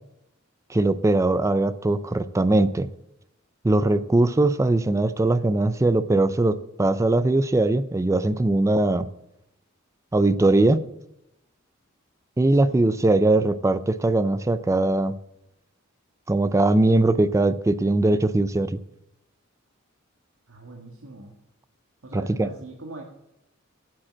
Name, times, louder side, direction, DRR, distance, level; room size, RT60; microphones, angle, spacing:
voice 1, 0.7-2.9 3.6-9.1 10.1-10.8 12.4-15.2 16.3-18.8 22.1-22.5, right 2 dB, 15° right, 14 dB, 0.4 m, -21 dB
voice 2, 12.5-12.8 20.5-21.3 22.0-23.0, right 2 dB, 85° right, 0 dB, 1.5 m, -42 dB
8.8 x 7.5 x 7.4 m, 0.85 s
head